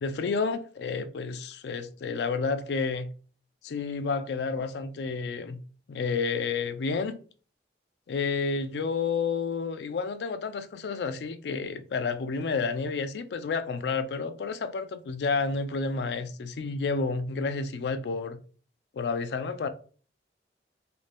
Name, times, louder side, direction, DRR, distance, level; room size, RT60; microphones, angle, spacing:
voice 1, 0.0-3.1 3.6-5.6 5.9-7.2 8.1-18.4 18.9-19.7, left 4 dB, 70° left, 0.4 m, -30 dB
2.6 x 2.6 x 3.2 m
head